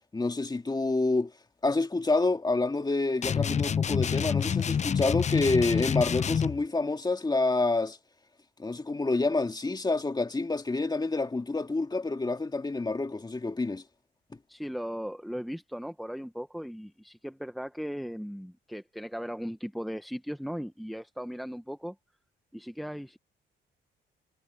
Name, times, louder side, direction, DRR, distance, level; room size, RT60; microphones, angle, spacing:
voice 1, 0.1-1.3 1.6-8.0 8.6-13.8, left 3 dB, 20° left, 2.1 m, -28 dB
sound 1, 3.2-6.6, left 7 dB, 35° left, 0.6 m, -27 dB
voice 2, 14.5-21.9 22.5-23.2, equal, ahead, 1.0 m, -37 dB
cardioid pair, 90°, 20 cm